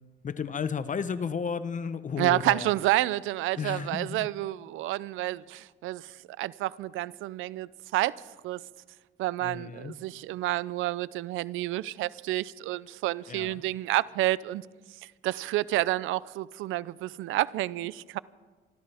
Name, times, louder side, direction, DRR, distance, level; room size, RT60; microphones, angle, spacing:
voice 1, 0.2-2.7 3.6-4.3 9.4-10.0 13.3-13.6, left 6 dB, 40° left, 0.9 m, -33 dB
voice 2, 2.2-8.1 8.4-8.6 9.2-14.7 15.2-18.2, right 16 dB, 90° right, 0.4 m, -29 dB
26.5 x 13.5 x 3.4 m
cardioid pair, 90°, 20 cm